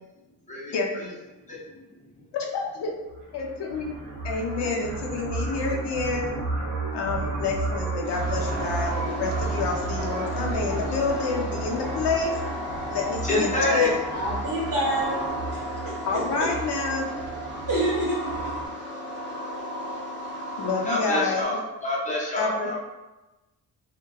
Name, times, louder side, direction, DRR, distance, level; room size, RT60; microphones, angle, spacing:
voice 1, 0.7-1.1 2.3-2.9 3.3-4.0 4.2-6.3 6.9-12.3 12.9-13.9 16.1-17.2 20.6-21.4 22.4-22.8, left 4 dB, 80° left, 0 dB, 0.6 m, -28 dB
voice 2, 1.5-1.8 13.2-14.0 20.9-22.8, left 2 dB, 20° left, -5 dB, 0.6 m, -26 dB
sound 1, 3.1-18.7, right 3 dB, 75° right, 0.8 m, -33 dB
sound 2, 8.0-21.4, equal, 30° right, 0.7 m, -34 dB
voice 3, 14.1-15.2 15.5-16.5 17.7-18.5, right 1 dB, 55° right, -5 dB, 1.2 m, -28 dB
2.8 x 2.1 x 2.2 m, 1.0 s
cardioid pair, 110°, 40 cm